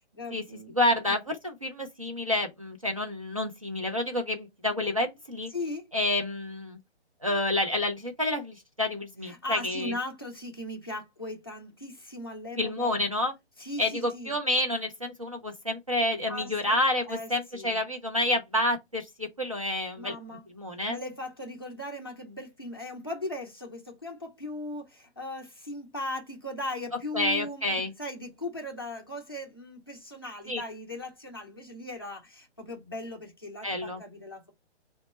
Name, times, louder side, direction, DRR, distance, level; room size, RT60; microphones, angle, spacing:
voice 1, 0.2-0.7 5.5-5.9 9.2-13.0 13.6-14.4 16.3-16.8 17.0-17.8 19.5-19.6 20.0-20.4 20.9-34.5, left 1 dB, 20° left, 0.5 m, -38 dB
voice 2, 0.7-5.5 5.9-6.8 7.2-9.9 12.6-13.3 13.8-20.2 20.5-21.0 27.1-27.9 30.5-30.6 33.6-34.0, left 1 dB, 30° right, 0.4 m, -29 dB
3.9 x 2.2 x 2.9 m
hypercardioid pair, 175°, 34 cm